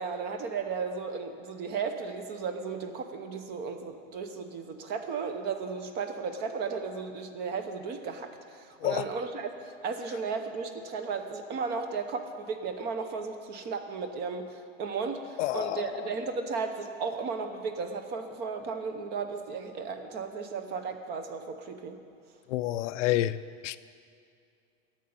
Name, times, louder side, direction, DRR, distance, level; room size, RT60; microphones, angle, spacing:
voice 1, 0.0-22.0, right 5 dB, 25° right, 7 dB, 0.8 m, -35 dB
voice 2, 15.4-16.1 22.5-23.4 23.6-23.8, left 14 dB, 70° left, 14 dB, 0.5 m, -29 dB
11.0 x 7.7 x 8.5 m, 2.3 s
supercardioid pair, 160°, 38 cm